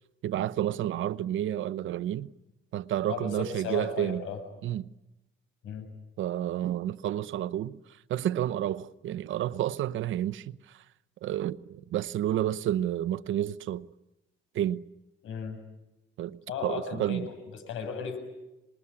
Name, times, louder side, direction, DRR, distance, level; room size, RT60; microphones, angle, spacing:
voice 1, 0.2-2.3 2.7-4.2 4.6-4.9 6.2-7.8 8.1-10.8 11.2-13.9 14.5-14.8 16.2-17.3, right 12 dB, 75° right, 0.9 m, -30 dB
voice 2, 3.1-4.4 5.6-5.9 15.2-15.6 16.5-18.2, left 6 dB, 85° left, 6.3 m, -35 dB
26.5 x 21.5 x 9.9 m
cardioid pair, 90°, 20 cm